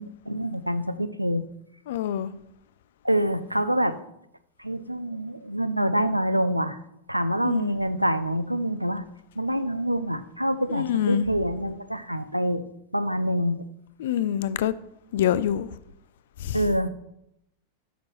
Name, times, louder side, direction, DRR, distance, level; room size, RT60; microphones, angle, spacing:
voice 1, 0.0-1.4 3.0-4.0 4.6-6.8 7.1-9.0 9.4-12.6 12.9-13.6 16.5-16.9, equal, 90° right, 0.4 m, -26 dB
voice 2, 1.9-2.3 7.4-7.7 10.7-11.3 14.0-14.7 15.1-15.7 16.4-16.6, left 10 dB, 55° left, 0.4 m, -25 dB
12.0 x 5.9 x 3.1 m
figure-of-eight pair, 90°, 0 cm